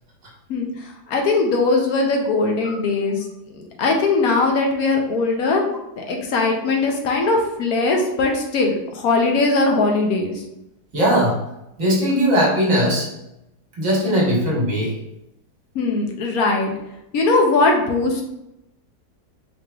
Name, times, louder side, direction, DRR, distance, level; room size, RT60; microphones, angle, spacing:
voice 1, 0.5-3.3 3.6-5.6 6.0-10.4 15.7-16.7 17.1-18.2, left 3 dB, 70° left, 1 dB, 1.1 m, -20 dB
voice 2, 10.9-11.4 11.8-13.1 13.8-15.0, equal, 60° right, -3 dB, 1.5 m, -19 dB
4.8 x 3.3 x 2.3 m, 0.85 s
omnidirectional pair, 1.7 m